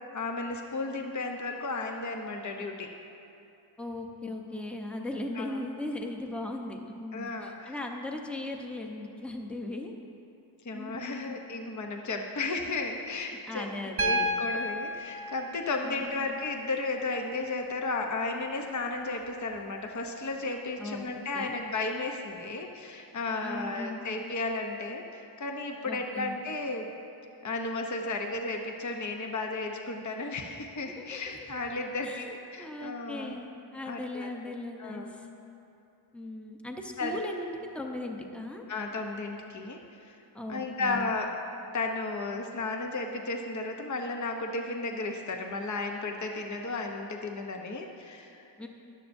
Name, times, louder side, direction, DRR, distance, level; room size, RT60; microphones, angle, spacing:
voice 1, 0.1-2.9 5.3-5.6 7.1-7.7 10.6-13.7 14.0-26.9 27.4-33.4 33.8-34.3 34.8-35.2 37.0-37.2 38.7-40.1 40.5-41.3 41.7-48.5, left 3 dB, 35° left, 3 dB, 0.7 m, -34 dB
voice 2, 3.8-9.9 10.7-11.4 13.5-14.3 15.8-16.3 20.8-21.0 21.3-21.5 23.4-24.1 25.8-26.3 31.0-31.2 32.0-35.3 36.1-38.7 40.3-41.1 48.6-48.7, left 2 dB, ahead, 2 dB, 0.7 m, -38 dB
Piano, 14.0-18.0 19.6-19.7, equal, 30° right, 0.5 m, -33 dB
14.0 x 11.0 x 2.6 m, 2.8 s
wide cardioid pair, 105°, 49 cm